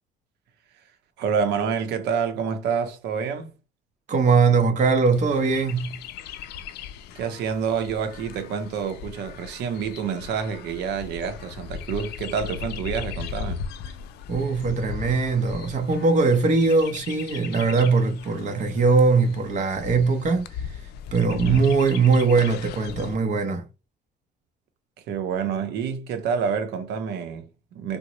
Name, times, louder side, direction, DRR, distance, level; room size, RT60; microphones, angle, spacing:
voice 1, 1.2-3.5 7.1-13.7 21.3-21.7 25.1-28.0, right 6 dB, 80° right, 0.7 m, -28 dB
voice 2, 4.1-6.0 14.3-20.8 21.1-23.7, right 4 dB, 45° right, 0.7 m, -21 dB
Chirp tweet, 5.1-23.2, left 7 dB, 75° left, 0.4 m, -38 dB
3.6 x 2.0 x 2.9 m
cardioid pair, 110°, 17 cm